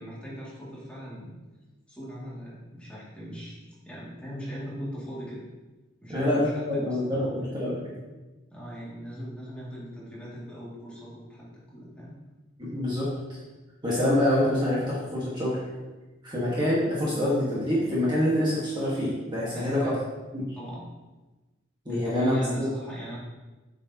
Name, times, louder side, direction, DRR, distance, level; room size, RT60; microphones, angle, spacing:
voice 1, 0.0-1.4 1.9-3.6 3.8-5.4 6.0-7.6 8.5-11.5 11.7-12.1 19.5-20.0 20.5-20.9 21.9-23.2, equal, 5° left, -8 dB, 2.4 m, -40 dB
voice 2, 6.1-7.9 12.6-13.1 13.8-15.6 16.2-20.0 20.3-20.6 21.8-22.7, left 1 dB, 20° right, -7 dB, 1.6 m, -26 dB
8.2 x 6.3 x 2.9 m, 1.2 s
head